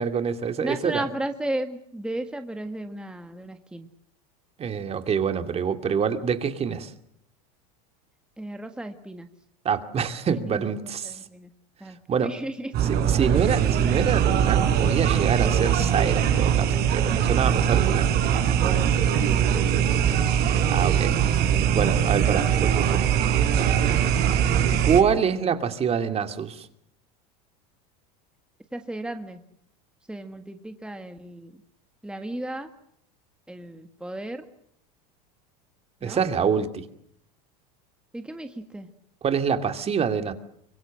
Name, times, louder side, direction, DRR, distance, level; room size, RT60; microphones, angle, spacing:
voice 1, 0.0-1.0 4.6-6.9 9.6-11.2 12.1-12.4 12.8-18.1 18.7-19.0 20.7-21.2 21.7-23.0 24.8-26.7 36.0-36.9 39.2-40.3, right 7 dB, 30° right, 8 dB, 2.5 m, -26 dB
voice 2, 0.6-3.9 8.4-9.3 10.5-10.6 11.0-11.5 11.8-12.0 12.2-12.7 19.1-20.2 28.7-29.4 30.1-31.5 32.0-32.7 33.5-34.4 36.0-36.2 38.1-38.9, right 1 dB, 5° right, 7 dB, 1.7 m, -34 dB
sound 1, 12.7-25.0, right 9 dB, 50° right, 5.2 m, -21 dB
25.0 x 22.5 x 7.7 m, 0.71 s
supercardioid pair, 105°, 20 cm